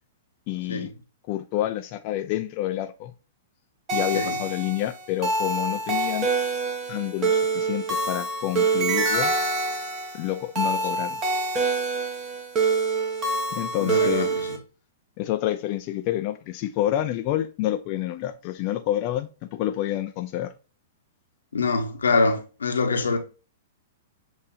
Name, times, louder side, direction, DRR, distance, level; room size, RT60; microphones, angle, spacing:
voice 1, 0.5-0.9 1.3-3.1 3.9-6.3 6.9-9.3 10.1-11.2 13.5-14.3 15.2-20.5, left 13 dB, 45° left, 0.5 m, -28 dB
sound 1, 3.9-14.6, right 3 dB, 30° right, 1.4 m, -26 dB
voice 2, 13.8-14.6 21.5-23.2, left 3 dB, 85° left, 1.2 m, -24 dB
7.5 x 2.7 x 2.6 m
hypercardioid pair, 120°, 0 cm